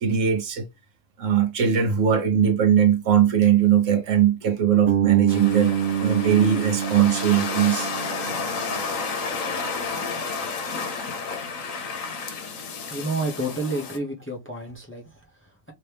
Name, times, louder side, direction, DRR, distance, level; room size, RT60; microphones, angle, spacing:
voice 1, 0.0-0.7 1.2-5.7 6.0-7.9, right 9 dB, 70° right, 1.1 m, -20 dB
Bass guitar, 4.9-9.0, right 9 dB, 50° right, 0.9 m, -27 dB
sound 1, 5.3-14.0, left 4 dB, 80° left, 1.2 m, -31 dB
voice 2, 12.9-15.7, right 1 dB, 10° left, 0.8 m, -30 dB
3.0 x 3.0 x 3.3 m
omnidirectional pair, 1.4 m